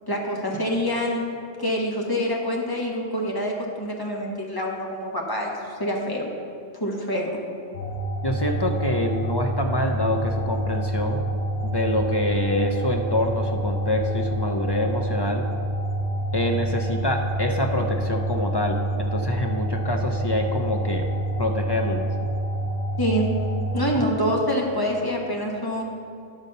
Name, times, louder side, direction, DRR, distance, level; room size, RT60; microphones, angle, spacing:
voice 1, 0.1-1.2 1.6-6.3 6.8-7.3 23.0-23.3 23.7-25.8, equal, 20° left, -1 dB, 1.2 m, -26 dB
sound 1, 7.7-23.8, right 1 dB, 80° left, 1.1 m, -27 dB
voice 2, 8.2-11.2 11.6-15.5 16.3-21.1 21.4-22.1 23.9-24.1, left 1 dB, 40° left, 2 dB, 0.4 m, -26 dB
10.5 x 4.2 x 6.5 m, 2.4 s
omnidirectional pair, 1.1 m